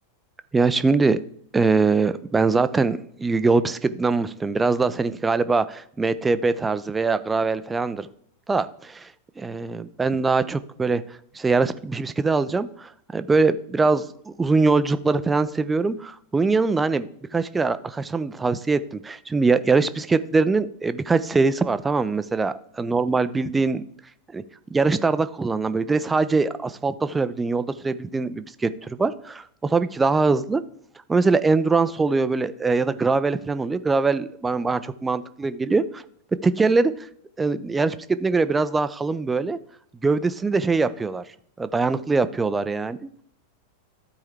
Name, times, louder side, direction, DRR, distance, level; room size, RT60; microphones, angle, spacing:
voice 1, 0.5-1.2 1.5-8.1 8.5-9.1 9.4-11.0 11.3-23.8 24.3-24.4 24.7-30.6 31.1-36.0 36.4-37.1 37.4-39.6 40.0-41.2 41.6-43.1, right 4 dB, 10° right, 13 dB, 0.4 m, -22 dB
13.5 x 4.7 x 3.4 m, 0.67 s
figure-of-eight pair, 90°, 0 cm